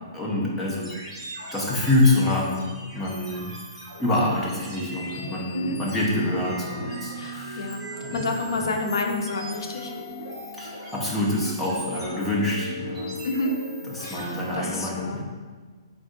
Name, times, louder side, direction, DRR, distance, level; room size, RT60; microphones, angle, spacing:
voice 1, 0.1-0.9 1.5-3.5 4.0-7.7 8.1-8.3 10.6-13.2 13.9-15.2, left 2 dB, 5° left, -5 dB, 0.5 m, -26 dB
sound 1, 0.8-14.6, equal, 10° right, 1.3 m, -38 dB
voice 2, 7.1-9.9 11.9-12.1 13.2-13.5 14.0-15.2, left 2 dB, 70° left, 3 dB, 0.5 m, -29 dB
3.7 x 2.6 x 3.7 m, 1.4 s
hypercardioid pair, 175°, 2 cm